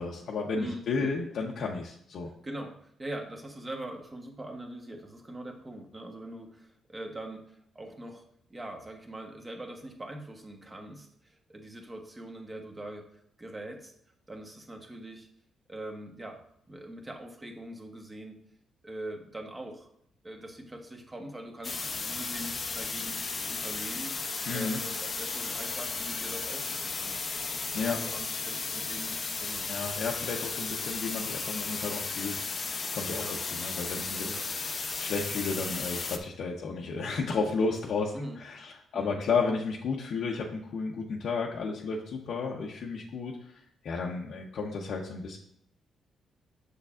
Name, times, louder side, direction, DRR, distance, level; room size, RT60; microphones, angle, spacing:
voice 1, 0.0-2.3 24.5-24.8 27.7-28.0 29.7-33.2 33.5-34.3 35.0-43.3 43.8-45.4, left 4 dB, 70° left, -2 dB, 0.8 m, -32 dB
voice 2, 0.5-1.1 2.4-8.2 8.5-13.1 13.4-13.9 14.3-15.3 15.7-16.4 16.7-18.4 18.8-19.9 20.2-23.2 23.5-24.1 24.5-27.2 27.7-29.7 33.1-33.4 34.2-34.5 38.1-38.4 38.9-39.2, right 1 dB, 20° right, 3 dB, 1.1 m, -42 dB
sound 1, 21.6-36.2, left 4 dB, 35° left, 0.6 m, -34 dB
6.6 x 6.6 x 2.5 m, 0.69 s
cardioid pair, 105°, 0 cm